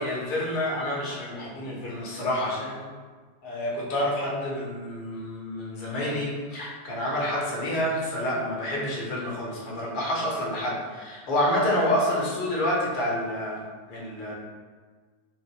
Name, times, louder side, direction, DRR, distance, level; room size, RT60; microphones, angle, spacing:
voice 1, 0.0-2.9 3.4-13.6 13.9-14.3, left 1 dB, 45° left, -5 dB, 1.0 m, -28 dB
3.0 x 2.2 x 3.3 m, 1.5 s
figure-of-eight pair, 90°, 0 cm